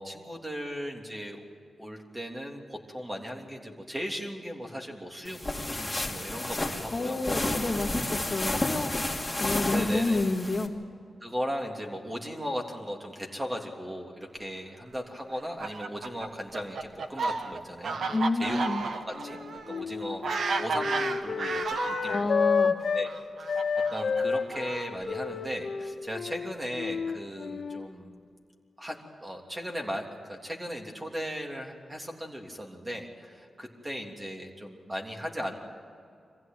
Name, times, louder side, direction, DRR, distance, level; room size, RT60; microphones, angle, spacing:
voice 1, 0.0-1.4 1.8-5.4 5.7-7.3 9.7-10.2 11.2-18.6 18.9-19.4 19.7-22.3 22.9-23.6 23.9-28.1 28.8-35.6, equal, 20° right, 1 dB, 3.2 m, -37 dB
sound 1, 5.2-10.7, left 1 dB, 10° left, 2.6 m, -31 dB
voice 2, 6.9-8.9 9.4-10.7 18.1-18.8 22.1-22.8, left 2 dB, 35° left, 0 dB, 2.0 m, -29 dB
Fowl, 15.3-22.2 23.0-25.1, right 4 dB, 75° right, 1.3 m, -33 dB
Wind instrument woodwind instrument, 19.1-23.1 23.5-27.9, left 5 dB, 65° left, 1.6 m, -30 dB
24.5 x 15.5 x 9.2 m, 2.3 s
cardioid pair, 80°, 0 cm